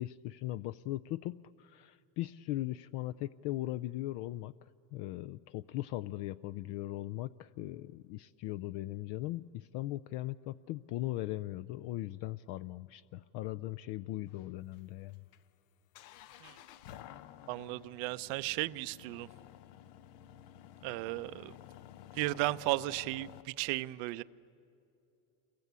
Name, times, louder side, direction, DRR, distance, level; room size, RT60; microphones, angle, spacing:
voice 1, 0.0-4.5 4.9-15.2, left 16 dB, 60° left, 0.5 m, -39 dB
sound 1, 14.3-23.4, left 12 dB, 85° left, 1.0 m, -53 dB
voice 2, 17.5-19.3 20.8-21.6 22.1-24.2, right 19 dB, 80° right, 0.8 m, -35 dB
28.0 x 23.5 x 8.2 m
cardioid pair, 135°, 46 cm